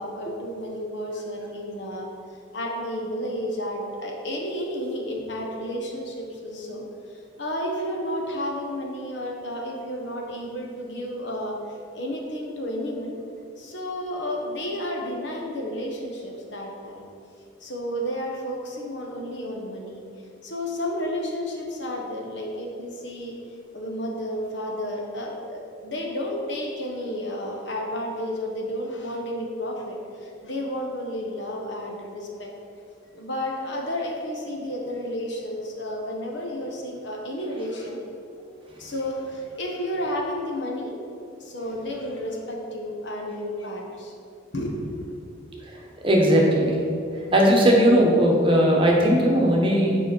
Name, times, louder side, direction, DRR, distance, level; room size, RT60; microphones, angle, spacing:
voice 1, 0.0-2.1 2.5-6.8 7.1-11.6 11.9-13.2 13.6-17.0 17.6-20.0 20.4-23.3 23.7-32.5 33.1-38.0 38.8-40.9 41.4-44.1 44.5-45.0, equal, 60° left, 0 dB, 1.2 m, -31 dB
voice 2, 46.0-46.8 47.1-50.0, equal, 25° right, -2 dB, 1.1 m, -18 dB
9.2 x 4.9 x 4.5 m, 2.5 s
head